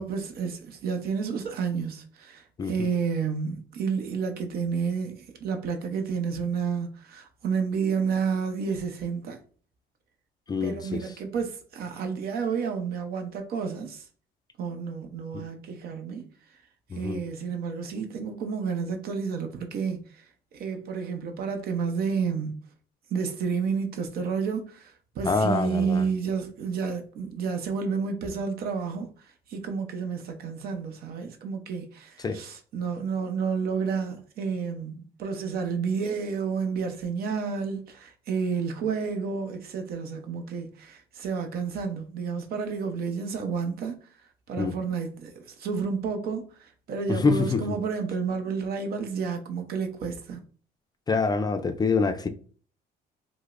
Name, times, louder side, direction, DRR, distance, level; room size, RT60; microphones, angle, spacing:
voice 1, 0.0-9.4 10.6-14.0 14.6-16.3 17.0-20.0 20.5-22.5 23.1-29.1 29.5-43.9 44.5-50.4, right 5 dB, 65° right, 0.7 m, -30 dB
voice 2, 10.5-11.1 15.3-15.4 16.9-17.2 25.2-26.1 32.2-32.4 44.6-44.7 47.1-47.6 51.1-52.3, left 4 dB, 25° left, 0.3 m, -25 dB
4.8 x 2.0 x 2.4 m
cardioid pair, 110°, 17 cm